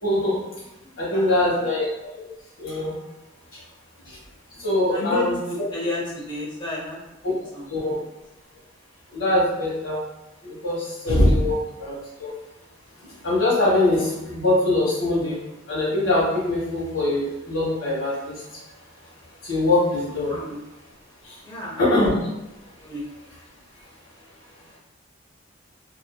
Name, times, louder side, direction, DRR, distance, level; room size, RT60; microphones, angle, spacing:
voice 1, 0.0-0.4 1.0-1.9 2.1-2.3 2.6-2.9 4.6-5.4 7.7-8.0 9.1-10.0 10.4-12.3 13.2-15.4 15.7-18.3 19.4-20.4 21.8-22.1, left 1 dB, 80° left, -6 dB, 1.2 m, -22 dB
voice 2, 0.8-1.6 4.9-7.0 7.5-7.7 11.4-11.6 20.2-20.6 21.4-21.8 22.8-23.1, left 1 dB, 20° left, -4 dB, 0.6 m, -32 dB
2.5 x 2.5 x 2.2 m, 0.98 s
head